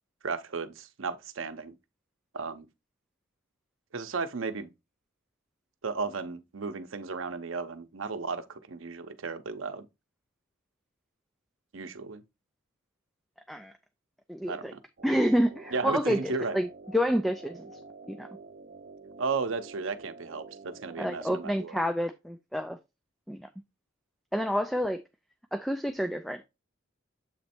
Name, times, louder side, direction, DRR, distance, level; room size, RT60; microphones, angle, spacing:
voice 1, 0.2-1.7 2.3-2.7 3.9-4.7 5.8-9.9 11.7-12.2 14.5-14.8 15.7-16.6 19.2-21.8, right 4 dB, 90° right, 0.7 m, -34 dB
voice 2, 14.3-14.7 15.0-17.7 18.1-18.3 21.0-22.8 23.3-23.5 24.3-25.0 25.5-26.5, equal, ahead, 0.3 m, -29 dB
sound 1, 15.0-21.5, right 3 dB, 50° right, 0.7 m, -48 dB
7.7 x 3.1 x 4.3 m
head